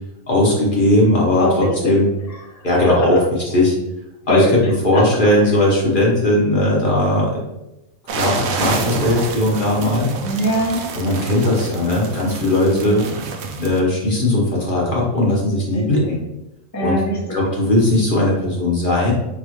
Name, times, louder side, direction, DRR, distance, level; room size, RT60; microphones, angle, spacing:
voice 1, 0.3-2.1 2.6-3.2 3.5-3.7 4.3-7.4 8.1-10.1 10.9-13.0 13.6-16.2 16.8-17.0 17.3-19.1, left 1 dB, 40° left, -4 dB, 1.2 m, -18 dB
voice 2, 1.4-1.9 2.3-3.2 4.3-5.0 5.4-5.5 10.2-10.8 12.7-13.1 15.7-16.1 16.7-17.4, equal, 15° left, -4 dB, 0.8 m, -23 dB
sound 1, 8.1-13.8, right 4 dB, 65° right, 0.7 m, -28 dB
4.3 x 3.5 x 3.0 m, 0.94 s
omnidirectional pair, 1.5 m